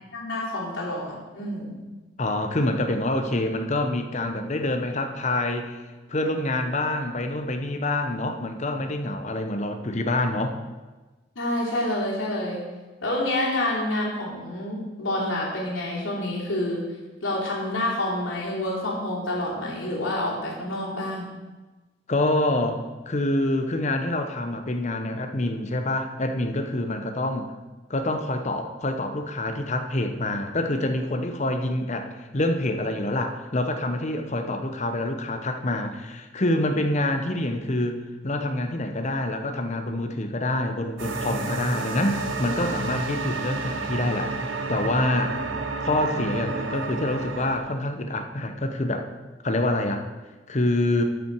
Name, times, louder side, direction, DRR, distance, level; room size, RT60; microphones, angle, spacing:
voice 1, 0.1-1.8 11.3-12.6 13.0-16.8 17.2-21.2, left 1 dB, 90° left, -5 dB, 3.0 m, -28 dB
voice 2, 2.2-5.8 6.1-10.6 22.1-27.5 27.9-44.3 44.7-45.4 45.8-49.1 49.4-50.1 50.5-51.0, left 1 dB, 35° left, 6 dB, 0.8 m, -26 dB
sound 1, 41.0-47.6, right 3 dB, 85° right, 1.0 m, -30 dB
12.0 x 5.8 x 4.7 m, 1.2 s
head